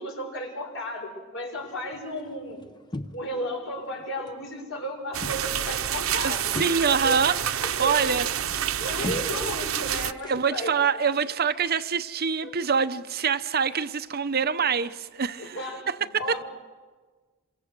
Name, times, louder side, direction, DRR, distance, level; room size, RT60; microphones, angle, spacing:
voice 1, 0.0-2.6 3.1-8.1 8.8-10.7 12.4-12.5 15.4-16.4, equal, 70° left, 6.9 m, -34 dB
sound 1, 1.6-3.6 3.9-4.5 4.8-10.8, left 1 dB, 20° left, 0.9 m, -41 dB
sound 2, 5.1-10.1, right 10 dB, 85° right, 0.7 m, -28 dB
voice 2, 6.2-8.2 9.3-9.4 10.3-16.0 16.3-16.4, right 6 dB, 50° right, 0.8 m, -25 dB
28.0 x 25.0 x 6.7 m
head